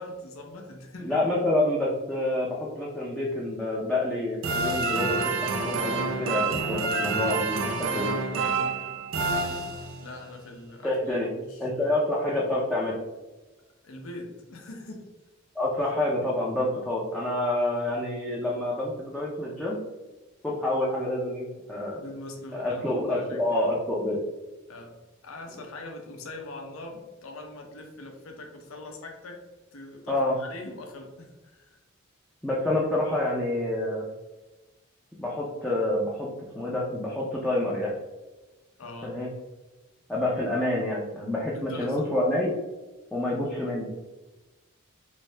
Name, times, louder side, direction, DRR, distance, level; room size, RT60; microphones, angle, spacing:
voice 1, 0.0-1.2 10.0-12.0 13.8-15.1 21.7-23.7 24.7-25.0 25.2-29.4 29.7-31.8 38.8-39.2 41.5-42.2, left 2 dB, 80° left, 2 dB, 0.6 m, -42 dB
voice 2, 1.0-8.1 10.8-11.3 11.6-12.9 15.6-19.8 20.4-22.0 22.5-24.2 30.1-30.4 32.4-34.1 35.2-36.3 36.5-37.9 39.0-39.3 40.1-42.5 43.1-43.9, left 1 dB, 5° left, -6 dB, 0.4 m, -28 dB
sound 1, 4.4-10.2, right 3 dB, 70° right, 0.5 m, -28 dB
3.2 x 2.7 x 3.2 m, 1.1 s
head